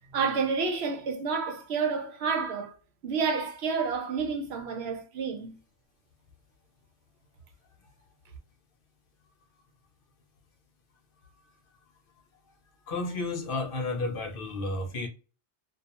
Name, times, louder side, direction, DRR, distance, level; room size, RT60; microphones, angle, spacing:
voice 1, 0.1-2.7 3.0-5.5, right 5 dB, 75° right, 0.8 m, -29 dB
voice 2, 12.9-15.1, left 2 dB, 60° left, 0.7 m, -32 dB
2.3 x 2.1 x 2.8 m
omnidirectional pair, 1.1 m